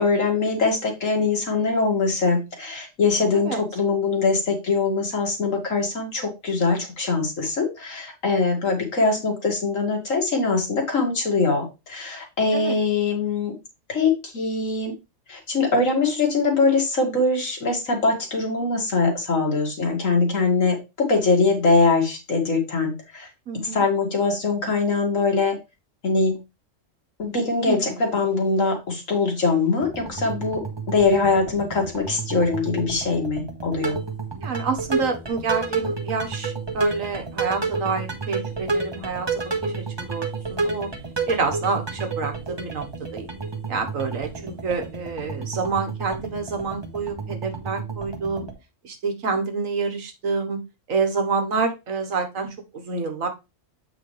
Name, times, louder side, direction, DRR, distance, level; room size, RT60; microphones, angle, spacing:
voice 1, 0.0-13.6 13.9-14.9 15.3-23.3 23.6-25.6 26.0-26.4 27.2-34.0, left 3 dB, 75° left, 1 dB, 2.4 m, -22 dB
voice 2, 23.5-23.8 27.7-28.0 34.4-40.9 41.3-42.9 43.1-43.3 43.7-48.5 48.8-50.6 50.9-53.3, right 4 dB, 85° right, 5 dB, 1.7 m, -28 dB
sound 1, 29.8-48.5, right 4 dB, 20° right, 1.3 m, -31 dB
8.2 x 4.9 x 3.3 m, 0.26 s
omnidirectional pair, 1.4 m